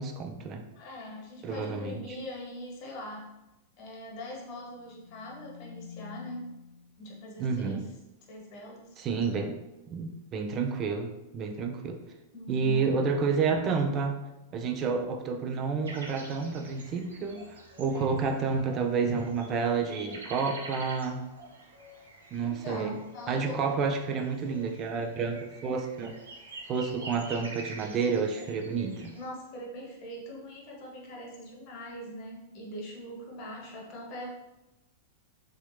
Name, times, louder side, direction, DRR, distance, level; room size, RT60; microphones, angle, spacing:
voice 1, 0.0-0.7 1.4-2.0 7.4-7.8 9.0-9.6 9.9-12.0 12.5-14.2 14.5-21.3 22.3-23.0 23.3-26.2 26.7-29.1, right 5 dB, 35° right, 4 dB, 0.4 m, -30 dB
voice 2, 0.8-3.3 3.8-6.6 7.0-7.9 8.3-9.0 12.3-12.9 17.9-18.3 22.4-23.6 26.8-26.9 29.2-34.3, left 1 dB, 45° left, -1 dB, 0.9 m, -42 dB
sound 1, 4.5-7.1, left 8 dB, 90° left, 0.6 m, -48 dB
sound 2, 15.9-29.3, right 2 dB, 80° right, 0.6 m, -47 dB
3.1 x 2.1 x 3.1 m, 0.97 s
figure-of-eight pair, 95°, 0 cm